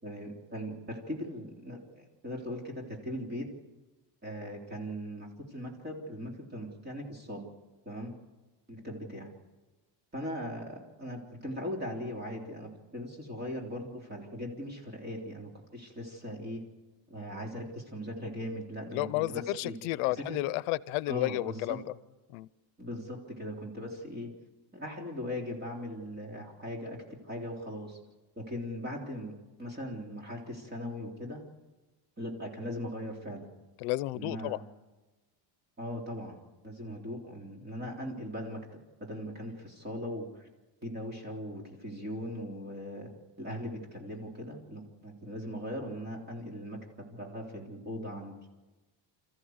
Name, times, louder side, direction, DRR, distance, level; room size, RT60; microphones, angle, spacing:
voice 1, 0.0-3.5 4.2-7.5 7.9-8.1 8.7-9.3 10.1-16.6 17.1-19.8 20.1-20.4 21.1-21.8 22.8-24.3 24.7-27.0 27.3-28.0 28.4-29.3 29.6-31.4 32.2-33.5 34.1-34.6 35.8-36.4 36.6-38.6 39.0-40.5 40.8-43.1 43.4-48.3, equal, 20° right, 0 dB, 3.5 m, -39 dB
voice 2, 18.9-21.8 22.3-22.5 33.8-34.6, left 18 dB, 85° left, 19 dB, 0.7 m, -32 dB
27.5 x 14.5 x 8.0 m, 1.2 s
cardioid pair, 155°, 48 cm